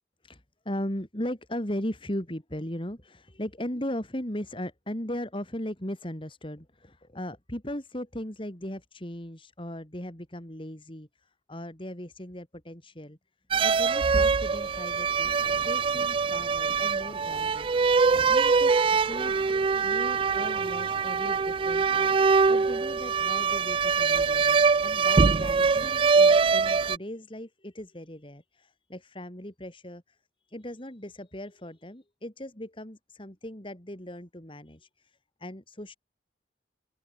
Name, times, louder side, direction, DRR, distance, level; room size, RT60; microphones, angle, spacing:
voice 1, 0.2-13.2 13.6-17.7 18.3-19.4 19.8-30.2 30.5-36.0, left 1 dB, 30° left, 3.4 m, -38 dB
sound 1, 13.5-27.0, right 5 dB, 30° right, 0.3 m, -23 dB
open air
head